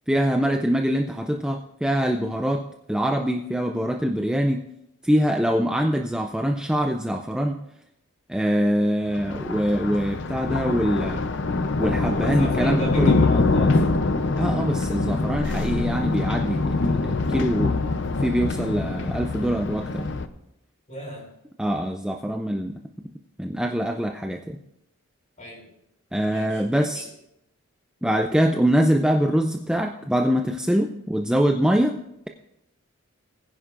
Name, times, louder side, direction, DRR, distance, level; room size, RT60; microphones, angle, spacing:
voice 1, 0.1-4.7 5.0-7.6 8.3-11.2 11.8-13.1 14.4-17.8 18.2-20.0 21.6-22.8 23.4-24.6 26.1-27.1 28.0-32.0, equal, 5° right, 3 dB, 0.4 m, -24 dB
Thunder, 9.1-20.3, left 3 dB, 55° left, 0.6 m, -24 dB
voice 2, 12.1-13.9 20.9-21.3 25.4-25.6 26.3-27.0, equal, 35° left, -1 dB, 5.2 m, -36 dB
20.0 x 10.0 x 2.5 m, 0.82 s
head